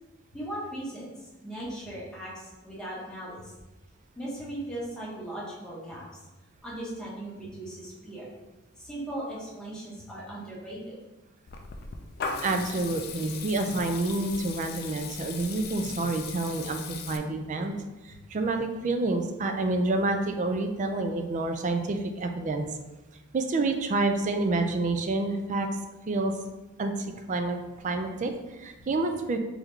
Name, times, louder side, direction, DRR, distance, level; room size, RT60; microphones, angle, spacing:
voice 1, 0.3-1.1 1.4-3.5 4.2-6.0 6.6-8.2 8.8-11.0, right 1 dB, 5° left, -8 dB, 1.1 m, -38 dB
Water tap faucet / Liquid, 11.5-17.2, left 5 dB, 45° left, 0.4 m, -38 dB
voice 2, 12.4-17.7 18.0-22.7 23.3-25.7 26.1-26.3 26.8-27.6 27.8-29.4, right 2 dB, 35° right, 6 dB, 0.3 m, -28 dB
3.6 x 3.4 x 3.1 m, 1.1 s
head